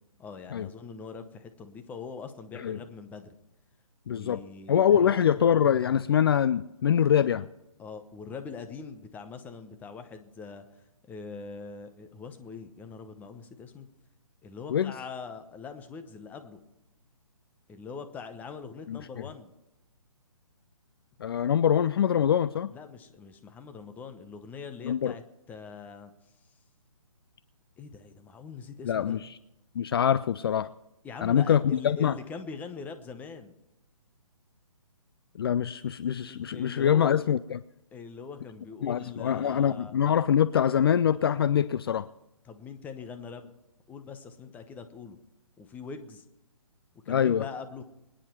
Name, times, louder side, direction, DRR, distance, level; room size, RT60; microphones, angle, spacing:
voice 1, 0.2-3.4 4.1-5.2 7.8-10.6 11.1-13.9 14.4-16.6 17.7-19.5 22.7-25.2 25.5-26.1 27.8-29.2 31.0-33.5 36.2-37.1 37.9-40.0 42.4-43.5 43.9-45.2 45.6-46.2 47.0-47.8, left 5 dB, 10° left, 8 dB, 0.9 m, -42 dB
voice 2, 4.1-4.4 4.7-7.5 14.7-14.9 18.9-19.0 21.2-22.7 24.8-25.1 28.9-29.2 29.8-30.7 31.2-32.1 35.4-37.6 38.8-42.1 47.1-47.4, left 9 dB, 40° left, 15 dB, 0.4 m, -24 dB
23.5 x 10.0 x 4.5 m, 0.93 s
figure-of-eight pair, 145°, 18 cm